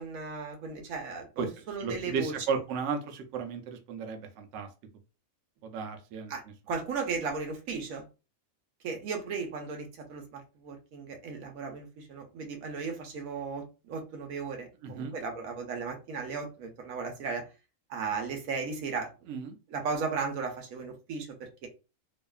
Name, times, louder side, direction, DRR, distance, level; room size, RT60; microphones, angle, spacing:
voice 1, 0.0-2.3 6.3-8.1 8.8-17.5 17.9-19.1 19.7-21.7, right 5 dB, 90° right, 3 dB, 1.1 m, -36 dB
voice 2, 1.8-4.7 5.6-6.3 14.8-15.1 19.3-19.6, right 5 dB, 70° right, 4 dB, 0.9 m, -34 dB
2.7 x 2.4 x 2.2 m, 0.30 s
omnidirectional pair, 1.4 m